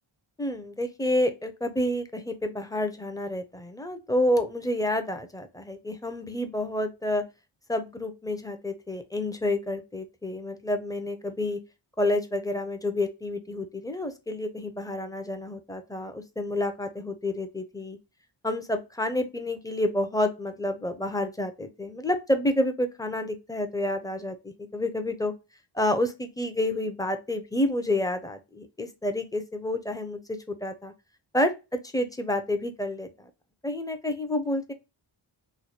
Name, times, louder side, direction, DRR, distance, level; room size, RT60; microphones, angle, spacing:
voice 1, 0.4-7.2 7.7-11.6 12.0-18.0 18.4-25.3 25.7-30.9 31.3-31.5 31.9-33.1 33.6-34.7, left 1 dB, 10° left, 7 dB, 0.6 m, -29 dB
3.1 x 2.2 x 4.1 m, 0.26 s
cardioid pair, 70°, 47 cm